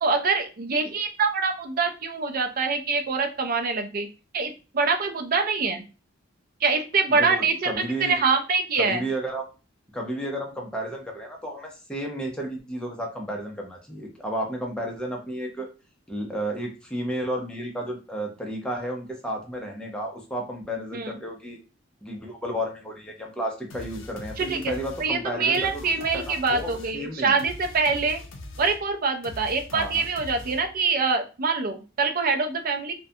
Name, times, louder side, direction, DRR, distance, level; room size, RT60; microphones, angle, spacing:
voice 1, 0.0-4.1 4.3-5.8 6.6-7.7 8.0-9.1 20.9-21.2 24.4-24.7 25.0-28.2 28.6-32.9, right 4 dB, 45° right, 5 dB, 0.4 m, -25 dB
voice 2, 7.1-8.2 8.8-9.4 9.9-15.7 16.1-21.6 22.0-27.4 29.7-30.0, right 1 dB, 5° left, -1 dB, 0.5 m, -32 dB
sound 1, 23.7-30.9, left 2 dB, 65° left, 0.5 m, -42 dB
2.3 x 2.1 x 2.6 m, 0.32 s
head